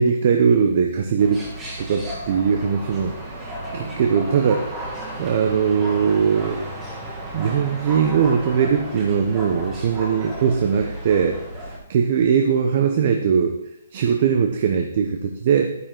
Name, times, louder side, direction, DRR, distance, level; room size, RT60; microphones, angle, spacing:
voice 1, 0.0-1.4 1.8-4.7 5.2-6.6 7.3-13.6 13.9-15.8, right 6 dB, 30° right, 4 dB, 0.7 m, -20 dB
sound 1, 1.2-11.8, right 1 dB, 10° right, 1.6 m, -33 dB
11.5 x 9.5 x 3.8 m, 0.80 s
hypercardioid pair, 180°, 0 cm